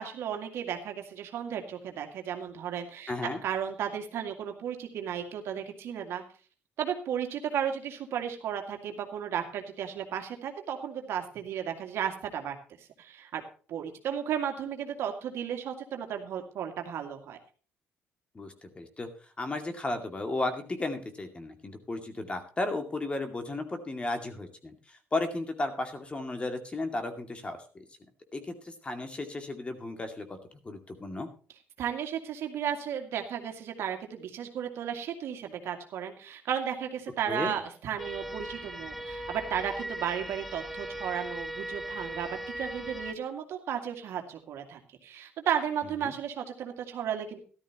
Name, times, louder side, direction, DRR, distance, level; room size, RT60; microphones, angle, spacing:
voice 1, 0.0-3.1 3.4-6.2 6.8-13.4 13.7-17.4 31.8-42.3 42.6-47.4, right 8 dB, 70° right, 5 dB, 2.2 m, -34 dB
voice 2, 3.1-3.4 18.3-19.1 19.4-27.8 28.3-30.3 30.6-31.3 37.3-37.5 46.0-46.1, left 2 dB, 25° left, 6 dB, 2.3 m, -34 dB
sound 1, 38.0-43.1, right 1 dB, ahead, 1.2 m, -38 dB
14.0 x 12.5 x 3.0 m, 0.39 s
cardioid pair, 85°, 4 cm